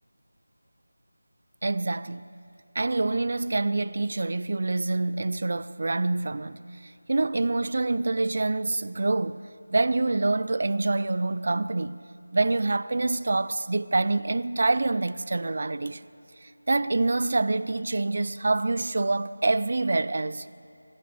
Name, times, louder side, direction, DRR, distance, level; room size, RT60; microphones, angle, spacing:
voice 1, 1.6-2.3 2.7-9.4 9.7-12.0 12.3-16.0 16.4-20.5, right 2 dB, 45° right, 0.7 m, -26 dB
24.5 x 17.0 x 8.0 m
figure-of-eight pair, 170°, 0 cm